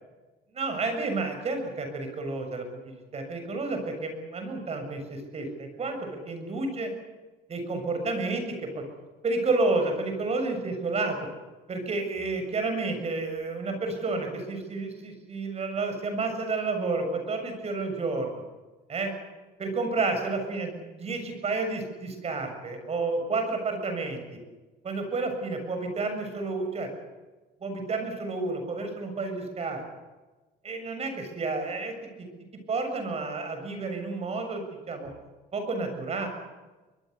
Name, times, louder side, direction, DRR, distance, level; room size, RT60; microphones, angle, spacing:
voice 1, 0.5-2.7 3.1-6.9 7.5-8.8 9.2-11.2 11.7-18.3 18.9-19.1 19.6-24.2 24.8-26.9 27.6-29.8 30.6-32.3 32.7-35.1 35.5-36.3, right 3 dB, 40° right, 6 dB, 7.3 m, -30 dB
23.5 x 21.5 x 8.1 m, 1.2 s
cardioid pair, 110°, 17 cm